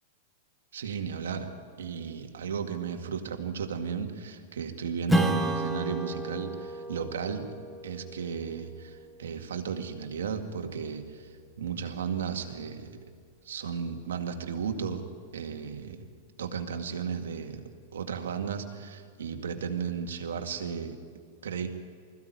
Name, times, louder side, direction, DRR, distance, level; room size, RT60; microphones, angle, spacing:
voice 1, 0.7-1.5 1.8-7.5 7.8-12.9 13.4-15.0 15.3-16.0 16.4-17.6 17.9-21.0 21.4-21.7, right 7 dB, 85° right, 5 dB, 2.1 m, -34 dB
Strum, 5.1-10.0, right 1 dB, 5° right, 1.4 m, -32 dB
21.0 x 15.5 x 9.5 m, 2.1 s
hypercardioid pair, 115°, 0 cm